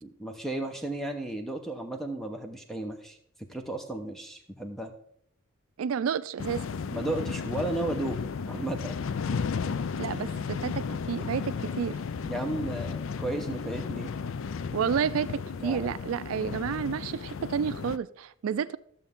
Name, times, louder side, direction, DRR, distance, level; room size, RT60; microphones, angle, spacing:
voice 1, 0.0-3.2 3.5-4.9 6.9-9.0 12.2-14.1 15.6-15.9, right 2 dB, ahead, 0.9 m, -34 dB
voice 2, 5.8-6.8 10.0-12.0 14.7-18.8, right 7 dB, 85° right, 0.4 m, -30 dB
sound 1, 6.4-18.0, left 5 dB, 70° left, 0.4 m, -34 dB
13.5 x 6.8 x 3.6 m
head